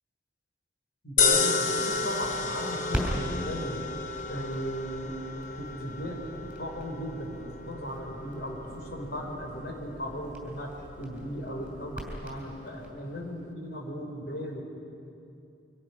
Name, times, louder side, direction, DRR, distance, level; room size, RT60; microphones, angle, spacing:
voice 1, 1.0-3.8 4.3-5.2 5.6-6.2 6.6-7.4 7.7-14.6, equal, 70° left, 1 dB, 4.7 m, -37 dB
sound 1, 1.2-13.5, left 4 dB, 45° left, 1.2 m, -33 dB
Crackle, 1.7-12.9, equal, 5° right, 5.2 m, -41 dB
28.5 x 24.5 x 6.1 m, 2.7 s
head